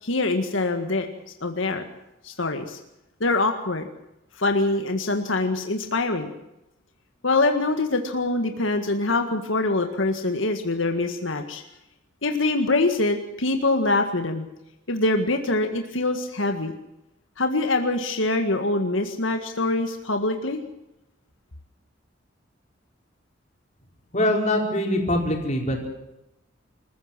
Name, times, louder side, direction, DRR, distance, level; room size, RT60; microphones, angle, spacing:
voice 1, 0.0-1.1 1.4-1.8 2.2-2.8 3.2-3.9 4.4-6.3 7.2-11.6 12.2-14.5 14.9-16.7 17.4-20.6, left 2 dB, 90° left, 5 dB, 1.9 m, -24 dB
voice 2, 24.1-25.9, left 1 dB, 40° left, 1 dB, 4.9 m, -23 dB
26.5 x 15.0 x 7.5 m, 0.89 s
head